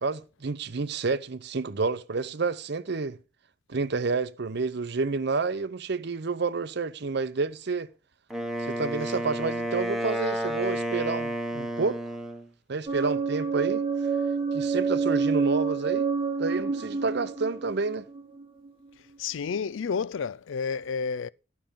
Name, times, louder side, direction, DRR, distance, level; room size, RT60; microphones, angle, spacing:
voice 1, 0.0-3.2 3.7-7.9 8.6-12.0 12.7-13.8 14.5-16.1 16.4-18.1, right 4 dB, 60° right, 0.7 m, -29 dB
Wind instrument woodwind instrument, 8.3-12.5, right 1 dB, ahead, 1.1 m, -31 dB
sound 1, 12.9-18.7, right 5 dB, 30° right, 0.9 m, -28 dB
voice 2, 19.2-21.3, left 6 dB, 80° left, 0.4 m, -30 dB
12.5 x 5.8 x 5.2 m
head